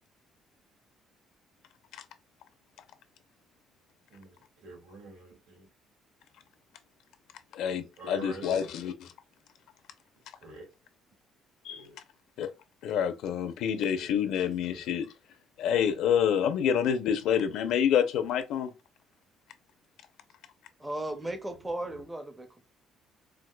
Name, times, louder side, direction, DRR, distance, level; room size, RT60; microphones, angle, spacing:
voice 1, 4.1-5.7 7.8-8.7 10.4-10.7 11.7-12.0 13.8-14.8 21.1-21.6 21.8-22.0, right 1 dB, 75° right, 1.8 m, -47 dB
voice 2, 7.5-8.9 11.6-11.8 12.4-12.5 12.8-15.1 15.6-18.7, left 8 dB, 75° left, 0.6 m, -27 dB
voice 3, 20.8-22.5, right 1 dB, 10° right, 0.5 m, -35 dB
4.6 x 2.1 x 2.2 m
cardioid pair, 145°, 0 cm